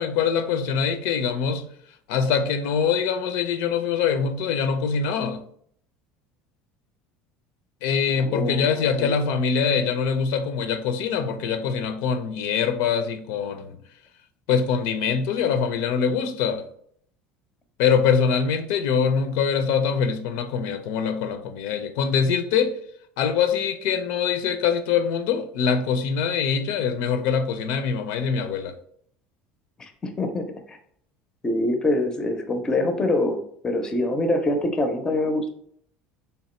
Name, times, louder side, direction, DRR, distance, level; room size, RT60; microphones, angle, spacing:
voice 1, 0.0-1.6 2.1-5.4 7.8-13.8 14.5-16.6 17.8-22.7 23.2-28.7, left 6 dB, 75° left, 0.4 m, -23 dB
voice 2, 8.2-9.1 29.8-30.8 31.4-35.5, left 1 dB, 15° left, 0.4 m, -25 dB
3.4 x 2.9 x 4.2 m
cardioid pair, 155°, 4 cm